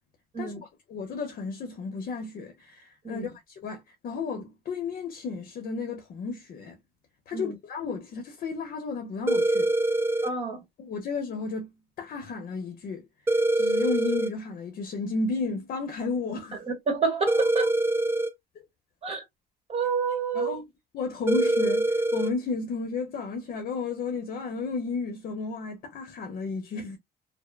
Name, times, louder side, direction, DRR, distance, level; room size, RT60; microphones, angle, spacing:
voice 1, 0.9-6.8 7.3-9.7 10.8-13.1 13.5-16.6 20.3-20.7 20.9-27.0, left 4 dB, 55° left, 0.7 m, -33 dB
sound 1, 9.3-10.3 13.3-14.3 17.3-18.3 21.3-22.3, right 1 dB, 15° right, 0.4 m, -24 dB
voice 2, 10.2-10.6 16.7-17.7 19.0-19.2 19.7-20.6, right 5 dB, 35° right, 1.3 m, -28 dB
2.9 x 2.0 x 2.2 m
cardioid pair, 110°, 17 cm